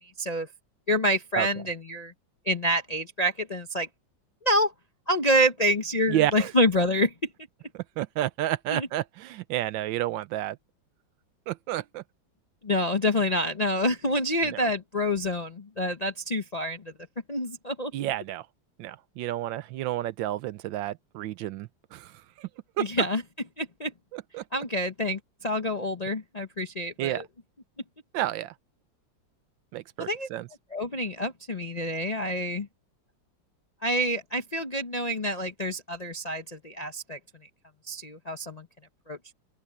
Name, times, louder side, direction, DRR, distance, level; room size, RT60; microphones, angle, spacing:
voice 1, 0.0-0.5 0.9-2.1 2.5-3.9 4.4-4.7 5.1-7.1 8.7-8.9 12.6-16.9 17.3-17.9 22.8-23.2 23.6-23.9 24.5-27.2 30.0-30.3 30.7-32.7 33.8-37.2 37.9-38.7 39.1-39.2, equal, 40° left, 0.5 m, -27 dB
voice 2, 6.1-6.5 7.7-10.6 11.5-12.0 17.9-18.4 18.8-22.1 22.4-22.5 22.8-22.9 24.1-24.4 27.0-27.2 28.1-28.5 29.7-30.5, right 13 dB, 80° right, 1.3 m, -30 dB
open air
omnidirectional pair, 2.1 m